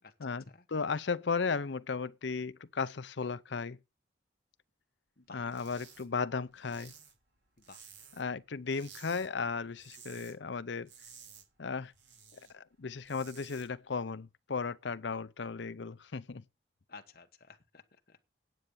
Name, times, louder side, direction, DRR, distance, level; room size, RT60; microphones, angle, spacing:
voice 1, 0.0-0.7 5.2-5.5 7.7-7.8 16.9-18.3, left 4 dB, 50° left, 1.3 m, -54 dB
voice 2, 0.7-3.8 5.3-6.9 8.2-10.9 11.6-11.9 12.3-16.4, left 5 dB, 75° left, 0.6 m, -35 dB
sound 1, 5.4-6.0 6.3-8.3 8.7-9.3 9.6-10.3 10.7-12.5 12.9-13.7, right 7 dB, 70° right, 4.6 m, -54 dB
9.3 x 8.0 x 7.0 m
head